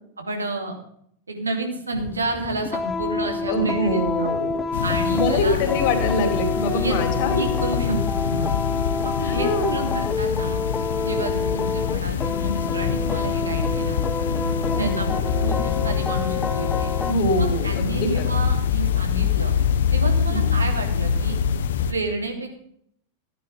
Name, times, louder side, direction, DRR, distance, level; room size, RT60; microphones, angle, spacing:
voice 1, 0.2-0.7 1.3-4.3 4.8-5.6 6.7-7.0 7.3-7.9 8.2-8.6 9.0-10.6 11.0-14.3 14.8-15.1 15.3-16.9 17.4-19.5 19.9-21.4 21.9-22.6, right 2 dB, 75° right, 3 dB, 2.9 m, -31 dB
sound 1, 1.9-17.1, left 4 dB, 15° left, 0.9 m, -28 dB
voice 2, 3.5-4.6 5.1-7.5 7.8-8.0 9.2-9.9 14.7-15.2 17.0-18.3 20.3-20.5, left 1 dB, 45° left, 3 dB, 3.9 m, -24 dB
sound 2, 4.7-21.9, left 7 dB, 60° left, 1.0 m, -25 dB
15.0 x 9.4 x 5.2 m, 0.68 s
figure-of-eight pair, 90°, 0 cm